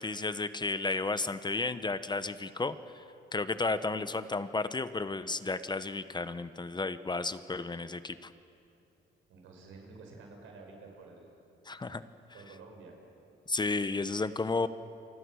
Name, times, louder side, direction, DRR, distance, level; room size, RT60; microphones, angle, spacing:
voice 1, 0.0-3.0 3.3-8.3 11.7-12.0 13.5-14.7, left 3 dB, 20° left, 12 dB, 1.0 m, -33 dB
voice 2, 9.3-11.6 12.3-13.0, right 3 dB, 85° right, 2 dB, 5.9 m, -51 dB
29.0 x 24.5 x 6.4 m, 2.7 s
cardioid pair, 90°, 20 cm